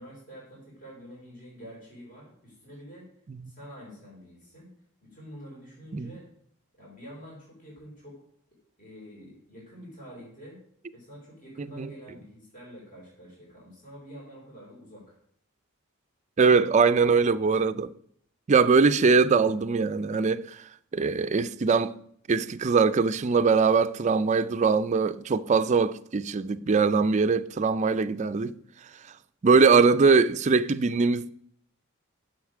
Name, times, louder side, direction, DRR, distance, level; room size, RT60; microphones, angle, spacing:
voice 1, 0.0-3.1 3.5-4.7 5.0-6.3 6.8-8.2 8.8-10.6 10.9-15.1, equal, 40° left, 3.4 m, -47 dB
voice 2, 11.6-11.9 16.4-17.9 18.5-20.6 20.9-21.9 22.3-28.6 29.4-31.3, right 4 dB, 35° right, 0.4 m, -22 dB
9.7 x 6.5 x 4.8 m
head